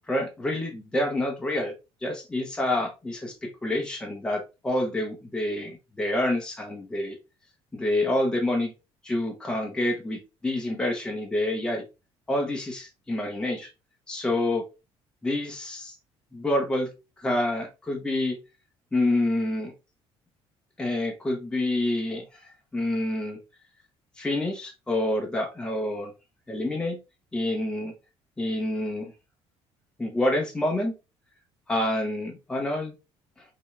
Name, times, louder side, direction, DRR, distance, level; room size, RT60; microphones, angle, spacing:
voice 1, 0.1-1.7 2.0-7.2 7.7-8.7 9.0-11.8 12.3-13.7 14.1-14.6 15.2-15.9 16.3-16.9 17.2-18.4 18.9-19.7 20.8-23.4 24.2-26.1 26.5-27.0 27.3-27.9 28.4-29.1 30.0-30.9 31.7-32.9, left 1 dB, 10° left, 1 dB, 0.9 m, -27 dB
5.3 x 3.0 x 3.3 m, 0.27 s
cardioid pair, 175°, 11 cm